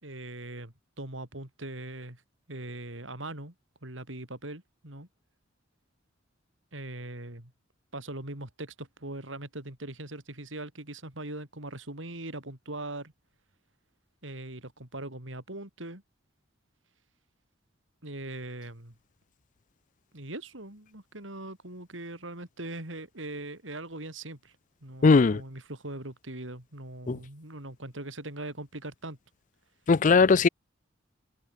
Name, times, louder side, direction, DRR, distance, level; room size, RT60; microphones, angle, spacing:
voice 1, 0.0-2.2 2.5-3.5 3.8-5.1 6.7-7.5 7.9-13.1 14.2-16.0 18.0-18.9 20.1-24.5 24.8-29.2, right 2 dB, 80° right, 4.8 m, -40 dB
voice 2, 25.0-25.4 27.1-27.2 29.9-30.5, left 4 dB, 40° left, 0.4 m, -19 dB
head